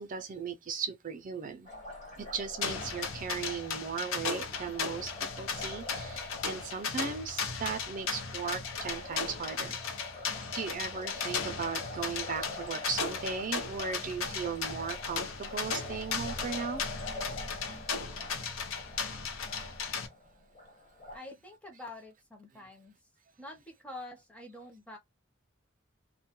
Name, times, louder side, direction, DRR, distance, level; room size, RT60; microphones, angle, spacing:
voice 1, 0.0-1.7 2.2-9.8 10.5-16.8, right 6 dB, 40° right, 0.4 m, -37 dB
Liquid, 1.6-21.2, left 1 dB, 35° left, 1.1 m, -45 dB
sound 1, 2.6-20.1, left 5 dB, 85° left, 0.7 m, -36 dB
voice 2, 21.1-22.9 23.4-25.0, left 2 dB, 5° left, 0.6 m, -46 dB
2.2 x 2.1 x 2.8 m
head